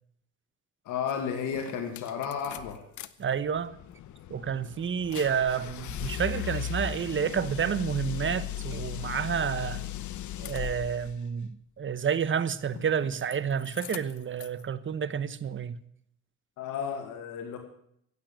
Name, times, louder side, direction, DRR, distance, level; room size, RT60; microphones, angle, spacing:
voice 1, 0.8-2.8 16.6-17.6, left 7 dB, 90° left, 2.1 m, -33 dB
sound 1, 1.1-1.2 1.5-3.1 3.4-11.2 12.7-13.4 13.6-14.6, left 10 dB, 70° left, 0.9 m, -37 dB
voice 2, 3.2-3.7 4.3-9.8 10.4-15.8, right 7 dB, 40° right, 1.1 m, -30 dB
16.0 x 8.7 x 9.0 m
cardioid pair, 90°, 30 cm